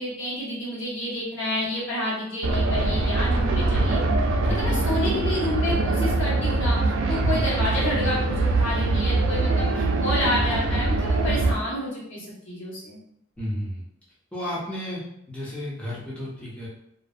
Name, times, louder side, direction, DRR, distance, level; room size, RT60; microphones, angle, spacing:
voice 1, 0.0-4.0 4.5-13.0, left 1 dB, 65° left, -8 dB, 1.2 m, -29 dB
sound 1, 2.4-11.5, right 2 dB, 65° right, 0.3 m, -23 dB
voice 2, 4.4-4.8 7.2-7.5 13.4-13.8 14.3-15.0 15.3-16.7, left 1 dB, 5° left, -8 dB, 0.5 m, -32 dB
2.4 x 2.1 x 2.4 m, 0.76 s
head